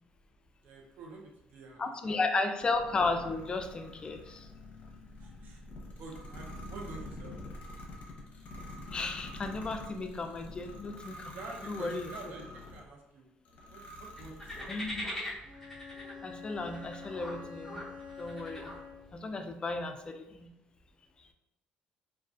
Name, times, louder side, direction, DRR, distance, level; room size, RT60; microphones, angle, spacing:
voice 1, 0.6-2.2 5.2-5.6 6.0-7.4 11.3-13.3 13.7-14.7 19.4-19.5, right 3 dB, 65° right, 0 dB, 0.6 m, -48 dB
voice 2, 1.8-4.5 8.9-11.3 11.6-12.1 14.7-15.1 16.2-17.8 18.2-18.7 19.1-20.5, left 3 dB, 30° left, 5 dB, 0.3 m, -34 dB
sound 1, 2.6-12.9 13.4-15.1, left 1 dB, 50° left, 0.7 m, -46 dB
sound 2, 14.2-19.1, left 1 dB, 5° left, 0.9 m, -43 dB
Bowed string instrument, 15.4-19.2, left 6 dB, 45° right, 1.1 m, -47 dB
2.3 x 2.2 x 2.4 m, 0.89 s
cardioid pair, 95°, 3 cm